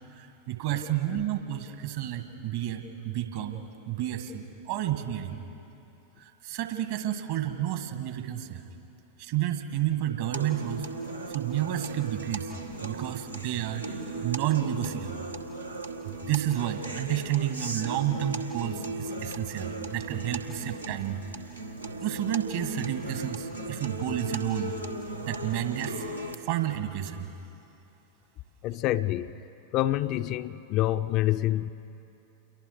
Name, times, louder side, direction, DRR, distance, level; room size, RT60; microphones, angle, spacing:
voice 1, 0.2-5.4 6.4-8.6 9.2-10.9 11.3-12.5 12.8-13.8 14.2-15.2 16.0-21.2 22.0-24.8 25.2-26.0 26.5-27.3, right 12 dB, 50° right, 1.7 m, -30 dB
sound 1, 10.3-26.3, right 2 dB, 85° right, 1.3 m, -37 dB
voice 2, 28.6-29.3 29.7-31.7, left 14 dB, 40° left, 0.5 m, -27 dB
28.5 x 23.0 x 5.1 m
figure-of-eight pair, 90°, 0 cm